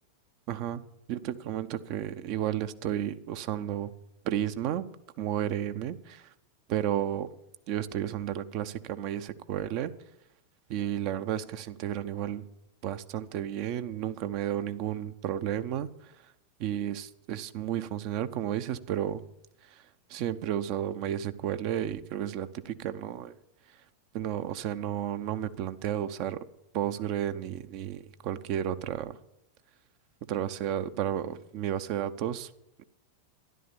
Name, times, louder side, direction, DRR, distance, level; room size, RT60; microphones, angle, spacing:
voice 1, 0.5-0.8 1.1-3.9 4.2-4.9 5.2-6.3 6.7-7.3 7.7-9.9 10.7-12.4 12.8-16.1 16.6-19.2 19.6-19.8 20.1-23.3 24.1-26.4 26.7-29.2 30.3-32.5 32.8-32.9, right 11 dB, 45° right, 11 dB, 0.7 m, -32 dB
13.0 x 11.0 x 7.0 m, 0.82 s
figure-of-eight pair, 90°, 0 cm